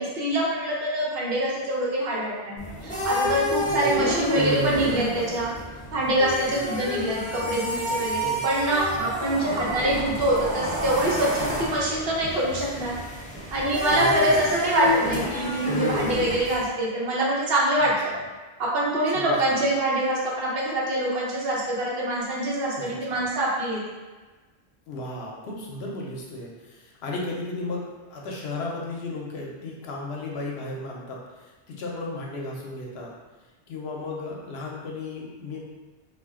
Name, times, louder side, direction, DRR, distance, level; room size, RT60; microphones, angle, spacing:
voice 1, 0.0-5.5 5.9-12.9 13.5-18.1 18.6-23.8, right 1 dB, 65° right, -5 dB, 0.9 m, -25 dB
sound 1, 2.6-16.6, equal, 10° left, 0.5 m, -29 dB
voice 2, 13.9-14.5 18.1-18.2 19.1-19.3 22.9-23.2 24.9-33.1 33.7-35.6, left 2 dB, 80° left, -2 dB, 0.9 m, -35 dB
2.4 x 2.1 x 3.5 m, 1.3 s
omnidirectional pair, 1.1 m